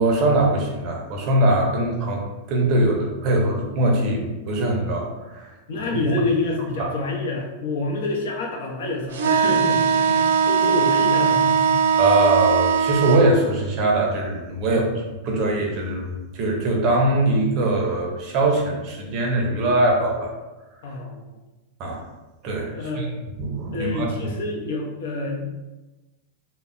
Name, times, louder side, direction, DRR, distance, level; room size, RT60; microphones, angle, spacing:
voice 1, 0.0-2.2 2.5-5.5 5.9-6.0 6.8-6.9 12.0-14.8 15.2-20.3 21.8-22.0 22.4-23.1 23.4-24.3, right 2 dB, 35° right, 0 dB, 0.5 m, -22 dB
voice 2, 5.7-11.8 13.0-13.1 14.7-14.9 20.8-21.4 22.7-23.1 23.7-25.4, left 2 dB, 70° left, -1 dB, 0.6 m, -27 dB
sound 1, 9.1-13.3, right 7 dB, 85° right, 0.3 m, -19 dB
2.1 x 2.0 x 3.7 m, 1.1 s
supercardioid pair, 170°, 0 cm